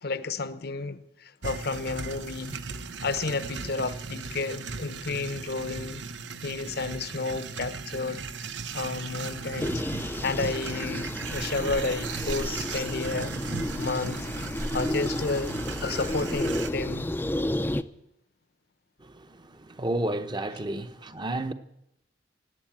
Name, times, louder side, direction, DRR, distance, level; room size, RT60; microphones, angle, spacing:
voice 1, 0.0-2.6 3.0-6.0 6.4-9.8 10.2-13.3 13.8-14.3 14.7-15.5 15.8-17.1, left 3 dB, 60° left, 0.9 m, -31 dB
sound 1, 1.4-16.7, right 4 dB, 90° right, 0.9 m, -37 dB
sound 2, 9.6-17.8, left 1 dB, 10° left, 0.5 m, -32 dB
voice 2, 19.0-21.5, right 1 dB, 25° right, 0.8 m, -32 dB
17.5 x 9.1 x 8.9 m
head